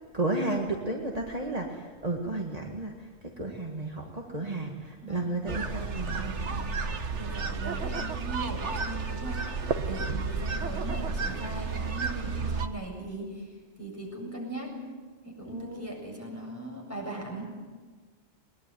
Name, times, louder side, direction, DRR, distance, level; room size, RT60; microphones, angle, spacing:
voice 1, 0.1-6.4 15.5-15.9, right 2 dB, 35° right, 0 dB, 2.0 m, -33 dB
voice 2, 5.0-5.4 6.1-6.7 7.1-14.8 15.2-17.5, right 2 dB, 15° left, -1 dB, 7.7 m, -39 dB
sound 1, 5.5-12.7, right 4 dB, 85° right, 1.6 m, -32 dB
21.5 x 21.0 x 9.3 m, 1.4 s
omnidirectional pair, 1.2 m